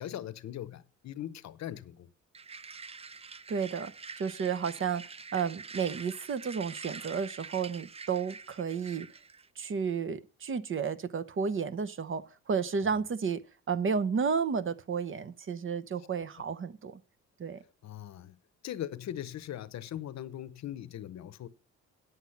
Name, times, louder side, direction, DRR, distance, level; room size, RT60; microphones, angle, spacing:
voice 1, 0.0-2.1 12.8-13.0 17.8-18.4 18.6-21.5, left 11 dB, 60° left, 0.8 m, -40 dB
sound 1, 2.3-9.5, right 5 dB, 20° right, 0.5 m, -46 dB
voice 2, 3.5-5.0 5.3-9.1 9.6-13.4 13.7-17.0 17.4-17.6, right 6 dB, 40° right, 0.9 m, -32 dB
9.4 x 7.9 x 5.5 m
cardioid pair, 90°, 30 cm